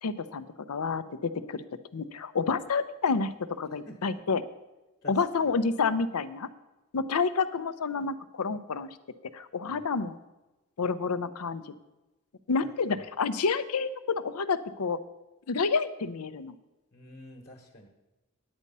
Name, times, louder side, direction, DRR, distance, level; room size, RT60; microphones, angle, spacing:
voice 1, 0.0-1.6 1.9-4.4 5.1-6.5 6.9-8.9 9.3-10.2 10.8-11.7 12.5-15.0 15.5-16.5, left 4 dB, 80° left, 13 dB, 0.6 m, -29 dB
voice 2, 3.7-4.2 5.0-5.3 9.6-9.8 12.6-13.1 16.9-17.9, equal, 45° left, 1 dB, 1.2 m, -48 dB
9.5 x 8.5 x 5.4 m, 1.0 s
head